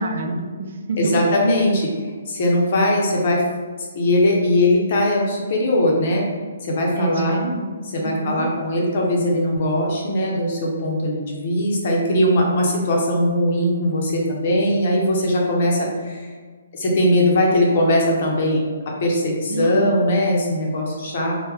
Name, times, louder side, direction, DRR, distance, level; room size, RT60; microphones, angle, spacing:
voice 1, 0.0-1.3 7.0-7.7 8.0-8.5 19.5-20.0, right 2 dB, 55° right, 3 dB, 0.5 m, -27 dB
voice 2, 1.0-1.9 2.3-3.4 3.8-6.2 6.6-7.4 7.9-16.3 16.7-18.6 19.0-21.3, left 1 dB, 40° left, -1 dB, 0.6 m, -20 dB
3.4 x 2.1 x 3.2 m, 1.5 s
hypercardioid pair, 170°, 0 cm